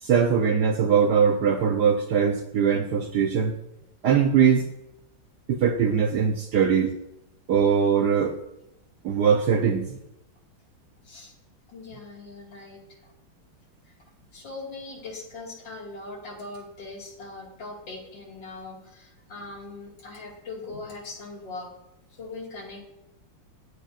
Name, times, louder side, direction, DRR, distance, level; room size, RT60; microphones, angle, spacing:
voice 1, 0.0-3.5 4.0-4.6 5.5-6.9 7.5-8.4 9.0-10.0, right 7 dB, 65° right, 4 dB, 1.1 m, -21 dB
voice 2, 11.7-12.8 13.9-14.0 14.3-21.7 22.1-22.8, left 3 dB, 60° left, -1 dB, 2.9 m, -40 dB
19.0 x 8.5 x 2.5 m, 0.87 s
omnidirectional pair, 2.3 m